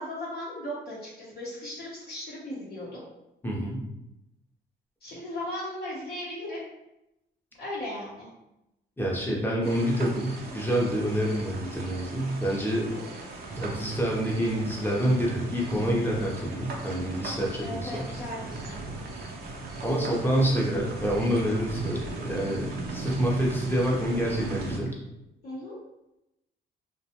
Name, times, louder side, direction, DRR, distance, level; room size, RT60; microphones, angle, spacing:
voice 1, 0.0-3.0 5.0-6.6 7.6-8.3 12.7-13.0 17.6-18.8 25.4-25.8, left 1 dB, 50° left, -6 dB, 0.8 m, -37 dB
voice 2, 3.4-3.8 9.0-12.9 13.5-18.0 19.8-24.9, equal, 10° left, -3 dB, 0.7 m, -27 dB
sound 1, 9.6-24.8, right 2 dB, 50° right, 0.6 m, -38 dB
2.4 x 2.2 x 2.8 m, 0.90 s
cardioid pair, 90°, 20 cm